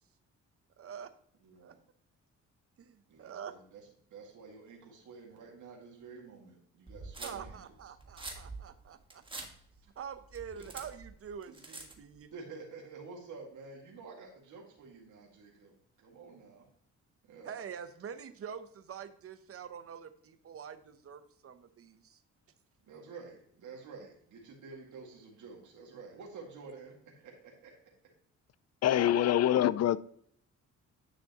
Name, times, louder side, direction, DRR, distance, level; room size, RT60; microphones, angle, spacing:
voice 1, 0.8-1.1 1.6-1.7 2.8-3.5 7.2-9.5 10.0-12.3 17.4-22.2, right 7 dB, 50° right, 0.8 m, -45 dB
voice 2, 1.4-1.8 3.1-7.6 10.6-10.7 11.5-11.6 12.3-15.7 16.0-16.7 17.2-17.6 22.8-27.8, right 4 dB, 75° right, 2.0 m, -50 dB
sound 1, 6.9-12.1, right 2 dB, 15° right, 1.5 m, -46 dB
voice 3, 28.8-30.0, left 11 dB, 55° left, 0.4 m, -25 dB
9.8 x 6.2 x 2.9 m
cardioid pair, 100°, 30 cm